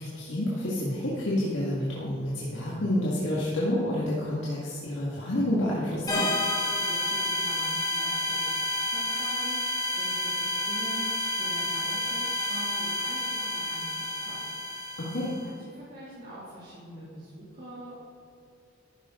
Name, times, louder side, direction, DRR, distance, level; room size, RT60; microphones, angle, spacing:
voice 1, 0.0-6.3 15.0-15.3, left 1 dB, 70° left, -6 dB, 2.0 m, -29 dB
sound 1, 6.1-15.5, left 1 dB, 20° left, 2.0 m, -30 dB
voice 2, 6.7-14.8 15.4-18.0, right 1 dB, 45° right, -9 dB, 2.7 m, -44 dB
13.0 x 10.0 x 3.8 m, 2.6 s
head